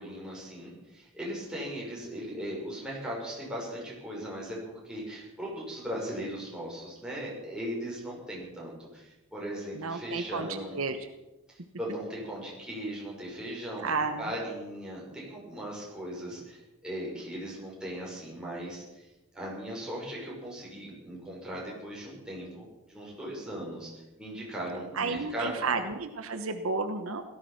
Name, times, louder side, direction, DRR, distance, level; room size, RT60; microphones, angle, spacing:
voice 1, 0.0-4.6 4.8-10.8 11.5-13.9 14.2-19.1 19.3-25.7, equal, 5° right, -5 dB, 6.1 m, -38 dB
voice 2, 9.7-11.0 13.8-14.3 24.9-27.2, right 4 dB, 65° right, 7 dB, 1.1 m, -32 dB
17.5 x 13.5 x 5.8 m, 1.0 s
head